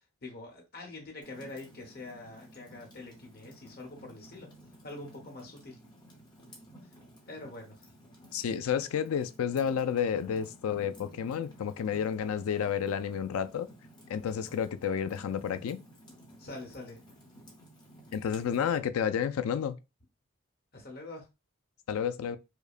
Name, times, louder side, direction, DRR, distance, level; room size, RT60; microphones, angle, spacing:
voice 1, 0.2-4.5 4.8-5.8 6.8-6.9 7.3-7.9 16.4-17.0 20.7-21.3, left 2 dB, 45° left, 1.0 m, -45 dB
Fire, 1.2-18.8, right 1 dB, 20° left, 0.8 m, -54 dB
voice 2, 8.3-13.7 14.1-15.8 18.1-19.8 21.9-22.4, left 8 dB, 85° left, 0.3 m, -31 dB
4.9 x 2.1 x 2.4 m
head